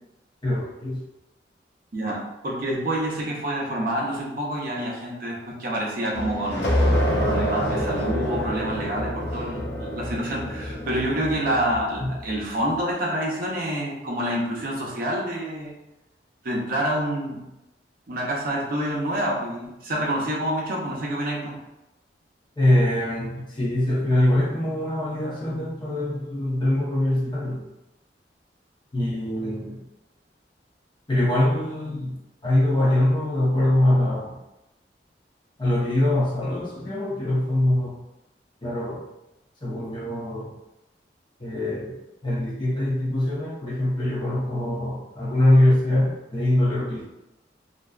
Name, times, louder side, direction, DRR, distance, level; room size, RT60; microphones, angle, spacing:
voice 1, 0.4-1.0 12.0-12.1 22.6-27.6 28.9-29.8 31.1-32.2 32.4-34.4 35.6-38.0 38.6-39.0 39.6-40.5 41.4-42.0 42.2-47.0, left 1 dB, 25° left, -7 dB, 0.8 m, -23 dB
voice 2, 1.9-6.8 7.2-15.7 16.4-17.4 18.1-21.6, right 1 dB, 55° right, -4 dB, 0.6 m, -27 dB
sound 1, 6.1-12.5, equal, 70° left, 0.6 m, -27 dB
2.5 x 2.2 x 2.3 m, 0.95 s
head